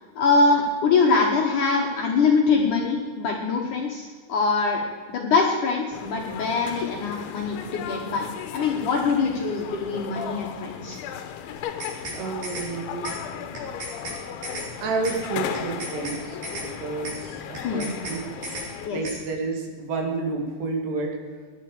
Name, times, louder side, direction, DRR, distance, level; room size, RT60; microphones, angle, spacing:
voice 1, 0.2-4.8 5.1-8.3 8.5-11.0 17.6-17.9 18.9-19.0, left 4 dB, 65° left, 0 dB, 2.2 m, -23 dB
sound 1, 5.9-18.9, left 8 dB, 90° left, 3.3 m, -36 dB
sound 2, 11.6-12.2 12.4-12.7 13.0-13.2 13.5-14.2 14.4-14.7 15.0-15.2 15.5-16.2 16.4-16.7 17.0-17.2 17.5-18.2 18.4-18.7 19.0-19.2, right 1 dB, 45° right, 5.5 m, -34 dB
voice 2, 12.1-13.1 14.8-18.3 18.6-21.5, right 4 dB, 70° right, 1 dB, 4.1 m, -30 dB
19.0 x 11.5 x 5.0 m, 1.5 s
omnidirectional pair, 5.1 m